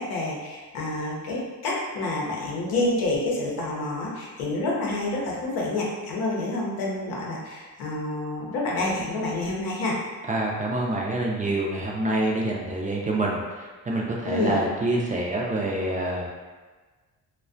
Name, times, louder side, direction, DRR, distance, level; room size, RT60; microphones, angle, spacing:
voice 1, 0.0-10.0 14.2-14.6, left 2 dB, 90° left, -3 dB, 0.7 m, -28 dB
voice 2, 10.3-16.3, right 2 dB, 25° right, -2 dB, 0.4 m, -26 dB
2.3 x 2.1 x 2.5 m, 1.3 s
cardioid pair, 80°, 36 cm